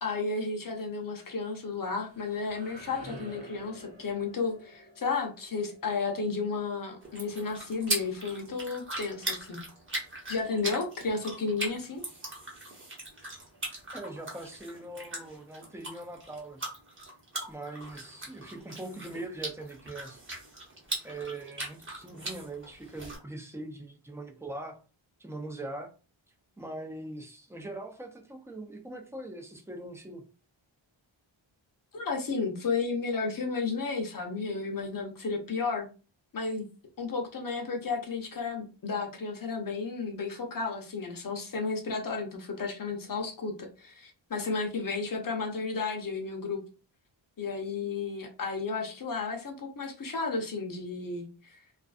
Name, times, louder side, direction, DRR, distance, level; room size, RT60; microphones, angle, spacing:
voice 1, 0.0-9.6 10.3-12.0 31.9-35.9 36.3-36.7 37.0-46.6 47.4-51.6, left 4 dB, 45° left, 1 dB, 0.7 m, -33 dB
sound 1, 1.7-7.5, right 1 dB, 65° right, 0.8 m, -50 dB
sound 2, 7.0-23.2, right 1 dB, 25° right, 0.9 m, -39 dB
voice 2, 13.9-16.6 17.5-20.2 21.0-24.8 25.2-25.9 26.6-30.2, right 2 dB, 5° right, 2 dB, 0.4 m, -41 dB
2.5 x 2.4 x 2.4 m, 0.34 s
wide cardioid pair, 120°, 48 cm